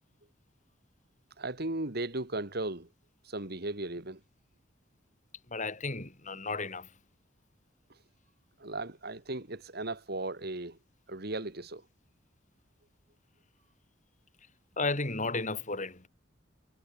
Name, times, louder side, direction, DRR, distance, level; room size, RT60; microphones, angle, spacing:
voice 1, 1.4-2.9 3.3-4.2 8.6-10.8 11.1-11.8, right 2 dB, 55° right, 2.7 m, -36 dB
voice 2, 5.5-6.9 14.8-16.1, left 3 dB, 40° left, 5.6 m, -33 dB
head